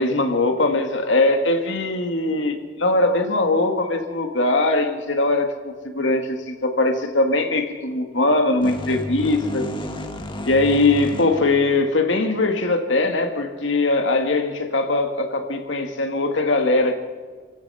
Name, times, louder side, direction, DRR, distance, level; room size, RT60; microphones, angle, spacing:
voice 1, 0.0-9.6 10.5-17.0, left 2 dB, 70° left, 5 dB, 2.1 m, -21 dB
sound 1, 8.6-12.4, equal, 25° left, 1.7 m, -32 dB
29.0 x 16.0 x 5.8 m, 1.5 s
head